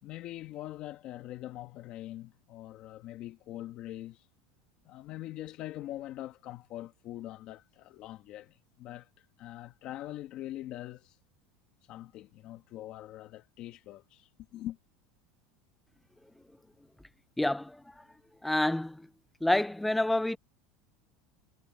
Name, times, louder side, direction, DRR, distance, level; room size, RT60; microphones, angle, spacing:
voice 1, 0.0-4.3 4.8-11.2 11.9-14.8, left 14 dB, 45° left, 1.4 m, -43 dB
voice 2, 17.4-17.8 18.4-19.0 19.4-20.4, left 1 dB, 5° left, 0.3 m, -28 dB
supercardioid pair, 150°, 2 cm